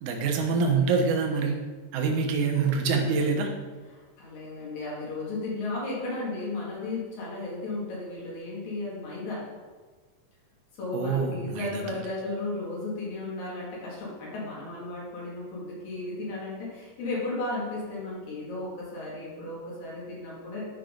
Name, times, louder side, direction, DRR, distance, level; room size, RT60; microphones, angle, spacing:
voice 1, 0.0-1.6 1.9-3.5 10.9-11.8, right 4 dB, 70° right, 1 dB, 2.4 m, -25 dB
voice 2, 3.9-9.4 10.8-20.7, left 2 dB, 85° left, -6 dB, 4.0 m, -34 dB
12.0 x 5.6 x 3.9 m, 1.4 s
omnidirectional pair, 3.9 m